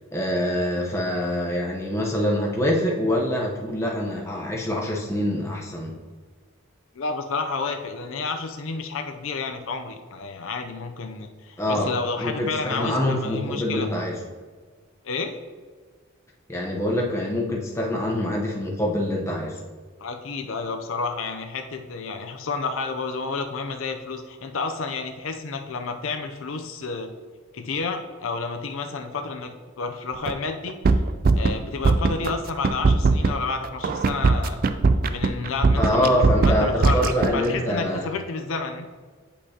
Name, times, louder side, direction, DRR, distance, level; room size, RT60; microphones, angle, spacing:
voice 1, 0.1-5.9 11.6-11.9 12.2-14.1 16.5-19.5 35.8-38.1, left 1 dB, 15° left, -2 dB, 0.9 m, -25 dB
voice 2, 7.0-13.9 15.0-15.3 20.0-27.1 27.5-30.7 31.3-34.6 35.1-38.9, left 4 dB, 75° left, 5 dB, 0.5 m, -30 dB
sound 1, 30.3-30.4 30.7-31.5 31.8-32.3 32.6-37.5, right 4 dB, 45° right, 0.3 m, -19 dB
8.5 x 5.2 x 2.8 m, 1.5 s
head